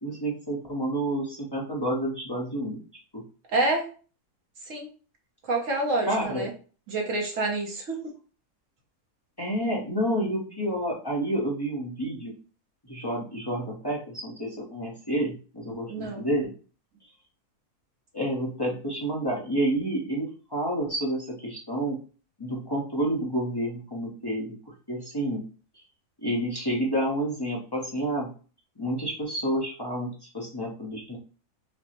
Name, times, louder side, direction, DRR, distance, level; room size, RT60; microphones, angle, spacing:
voice 1, 0.0-2.8 6.1-6.5 9.4-12.3 12.9-16.5 18.1-22.0 22.4-25.4 26.2-28.3 28.8-31.2, right 1 dB, 25° left, -3 dB, 0.6 m, -29 dB
voice 2, 3.5-3.9 4.7-4.9 5.5-6.5 6.9-8.0 15.9-16.2, right 2 dB, 65° right, 0 dB, 1.1 m, -27 dB
5.1 x 2.0 x 2.9 m, 0.38 s
omnidirectional pair, 1.6 m